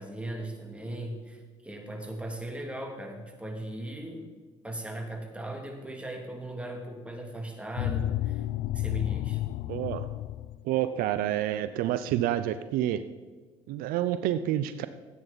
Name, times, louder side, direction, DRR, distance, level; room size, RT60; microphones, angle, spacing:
voice 1, 0.0-4.3 4.6-8.4 8.7-9.4, right 1 dB, 5° right, 2 dB, 2.5 m, -38 dB
sound 1, 7.8-10.6, left 14 dB, 60° left, 0.4 m, -31 dB
voice 2, 9.7-10.1 10.6-13.0 13.7-14.9, right 12 dB, 70° right, 12 dB, 0.5 m, -28 dB
14.0 x 8.9 x 4.1 m, 1.4 s
hypercardioid pair, 70°, 16 cm